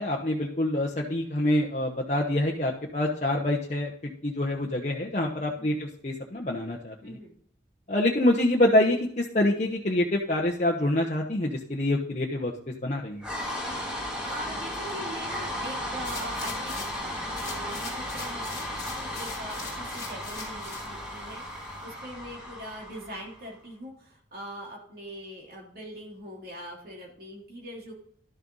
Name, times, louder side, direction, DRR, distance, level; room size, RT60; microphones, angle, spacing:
voice 1, 0.0-3.9 4.2-7.2 7.9-13.2, left 1 dB, 40° left, -2 dB, 1.0 m, -26 dB
voice 2, 7.0-7.3 13.9-17.1 17.4-27.9, right 1 dB, 55° right, -2 dB, 3.4 m, -42 dB
sound 1, 13.2-23.5, left 1 dB, 5° right, 2.6 m, -35 dB
sound 2, 16.0-17.0 17.3-20.9 21.4-21.5, left 4 dB, 20° left, 2.8 m, -41 dB
12.0 x 6.7 x 4.0 m, 0.63 s
head